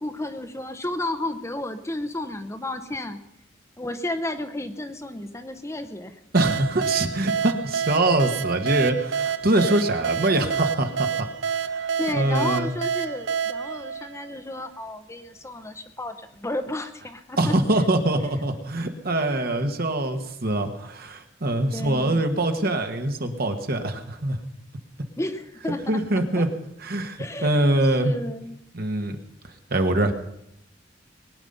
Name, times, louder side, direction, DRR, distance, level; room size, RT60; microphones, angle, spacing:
voice 1, 0.0-3.2 3.8-6.2 12.0-17.5 21.7-22.2 25.2-26.5 27.2-27.6 28.0-28.6, left 1 dB, 15° left, 8 dB, 0.8 m, -32 dB
voice 2, 6.3-12.7 17.4-24.4 25.9-26.5 26.8-28.1 28.7-29.2 29.7-30.1, right 1 dB, 55° right, 5 dB, 1.6 m, -24 dB
sound 1, 6.3-14.8, right 7 dB, 75° right, 0.6 m, -28 dB
21.0 x 9.5 x 5.6 m, 0.80 s
head